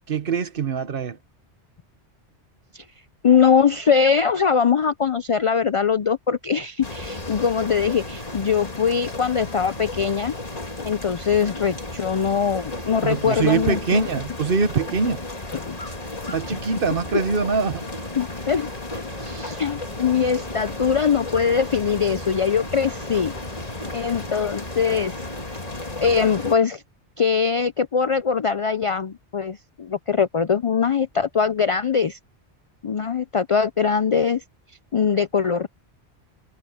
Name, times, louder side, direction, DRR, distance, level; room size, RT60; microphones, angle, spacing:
voice 1, 0.1-1.2 13.0-15.2 16.3-17.9, right 5 dB, 55° right, 1.1 m, -23 dB
voice 2, 3.2-10.3 10.8-14.1 15.5-15.8 17.1-17.2 18.2-18.7 19.2-23.3 23.9-25.1 26.0-26.8 27.2-32.2 32.8-34.4 34.9-35.7, left 6 dB, 55° left, 0.3 m, -22 dB
sound 1, 6.8-26.6, left 2 dB, 35° left, 2.4 m, -34 dB
Cheering / Applause / Crowd, 11.2-24.3, equal, 25° right, 7.5 m, -56 dB
Water, 19.0-24.3, equal, 5° right, 5.3 m, -45 dB
omnidirectional pair, 1.1 m